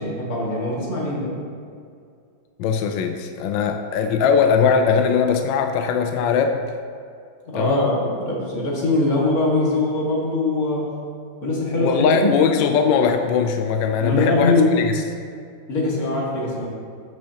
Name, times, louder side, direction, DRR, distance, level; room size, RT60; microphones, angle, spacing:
voice 1, 0.0-1.3 7.5-10.9 11.4-12.3 14.0-14.7 15.7-16.7, left 2 dB, 45° left, -4 dB, 2.2 m, -22 dB
voice 2, 2.6-6.8 7.6-7.9 11.8-14.9, left 6 dB, 75° left, 5 dB, 1.2 m, -20 dB
14.0 x 6.2 x 2.9 m, 2.3 s
omnidirectional pair, 2.2 m